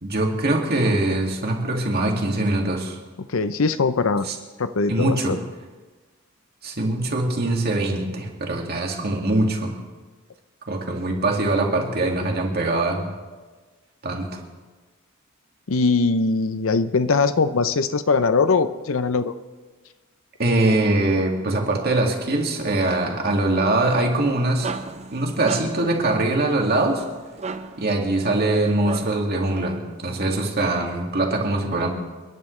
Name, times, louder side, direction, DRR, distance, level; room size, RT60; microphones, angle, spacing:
voice 1, 0.0-3.0 4.2-4.3 4.9-5.3 6.6-9.7 10.7-13.1 14.0-14.4 20.4-24.7 25.1-27.0 27.8-31.9, right 2 dB, 50° right, 0 dB, 2.2 m, -22 dB
voice 2, 3.2-4.3 4.6-5.4 15.7-19.3, left 4 dB, 70° left, 12 dB, 0.6 m, -21 dB
sound 1, 24.1-29.4, right 4 dB, 30° right, 0.6 m, -36 dB
29.5 x 11.0 x 3.3 m, 1.3 s
head